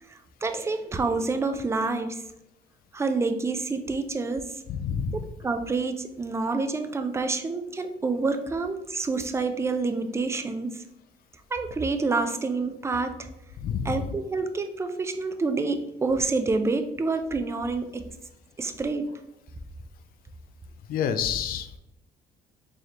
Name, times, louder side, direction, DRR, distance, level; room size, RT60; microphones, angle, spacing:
voice 1, 0.1-2.2 2.9-4.4 5.4-10.8 11.5-13.1 13.9-18.0 18.6-19.1, right 3 dB, 15° right, 8 dB, 0.4 m, -28 dB
voice 2, 4.7-5.3 13.6-14.0 20.9-21.8, left 7 dB, 60° left, 9 dB, 0.4 m, -28 dB
4.0 x 3.2 x 2.9 m, 0.87 s
cardioid pair, 110°, 17 cm